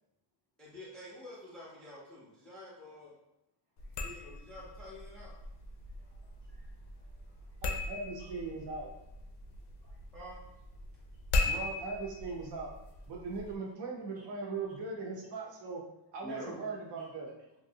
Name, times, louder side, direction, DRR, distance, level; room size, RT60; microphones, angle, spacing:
voice 1, 0.6-3.2 4.0-5.3 6.0-6.2 7.0-7.2 10.1-10.4 13.7-13.8 16.2-16.6, left 1 dB, ahead, -7 dB, 0.4 m, -48 dB
sound 1, 3.8-13.6, left 2 dB, 60° left, 0.5 m, -39 dB
voice 2, 6.0-7.6 8.2-8.3 9.8-10.0 14.1-14.3 17.0-17.1, right 1 dB, 15° right, -5 dB, 0.9 m, -67 dB
voice 3, 7.6-8.9 11.4-12.7 13.1-15.8 16.1-17.3, right 4 dB, 60° right, -1 dB, 0.7 m, -39 dB
3.1 x 2.6 x 2.7 m, 0.87 s
cardioid pair, 175°, 48 cm